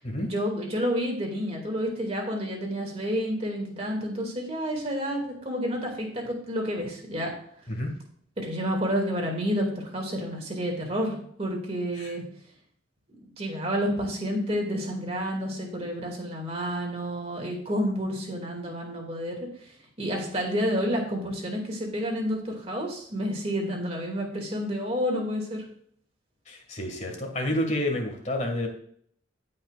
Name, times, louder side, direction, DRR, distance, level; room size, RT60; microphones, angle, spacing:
voice 1, 0.2-7.3 8.4-12.2 13.4-19.4 20.0-25.6, equal, 30° right, 1 dB, 2.3 m, -29 dB
voice 2, 26.5-28.7, left 1 dB, 35° left, 3 dB, 1.9 m, -29 dB
16.0 x 5.5 x 2.5 m, 0.62 s
head